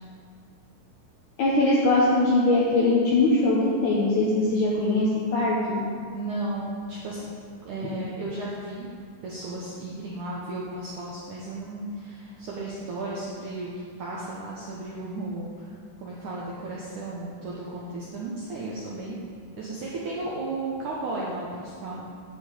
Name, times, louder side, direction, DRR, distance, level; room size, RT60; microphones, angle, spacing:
voice 1, 1.4-5.8, left 2 dB, 70° left, -5 dB, 1.9 m, -21 dB
voice 2, 6.1-7.3 7.6-8.9 9.2-13.7 14.0-15.7 16.0-19.2 19.6-22.0, right 2 dB, 70° right, -5 dB, 1.9 m, -34 dB
9.5 x 6.5 x 8.3 m, 2.2 s
omnidirectional pair, 5.2 m